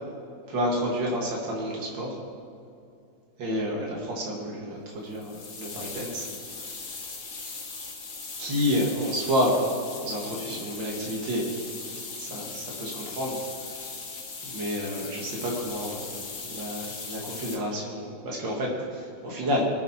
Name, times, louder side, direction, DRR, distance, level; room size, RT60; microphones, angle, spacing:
voice 1, 0.5-2.2 3.4-6.3 8.4-9.7 10.0-11.5 12.2-13.4 14.4-19.6, equal, 75° right, -3 dB, 2.8 m, -29 dB
sound 1, 5.1-17.6, left 4 dB, 50° left, 1.8 m, -39 dB
23.5 x 7.9 x 4.5 m, 2.5 s
omnidirectional pair, 2.0 m